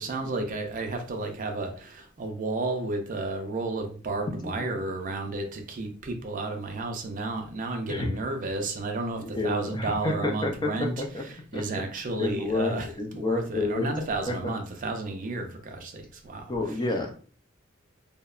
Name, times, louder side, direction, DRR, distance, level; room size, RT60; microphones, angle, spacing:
voice 1, 0.0-16.8, right 2 dB, 40° right, 0.4 m, -32 dB
voice 2, 9.2-11.2 11.5-11.8 12.2-13.9 14.3-14.4 16.5-17.1, left 2 dB, 20° left, 0.3 m, -29 dB
2.7 x 2.1 x 2.3 m
head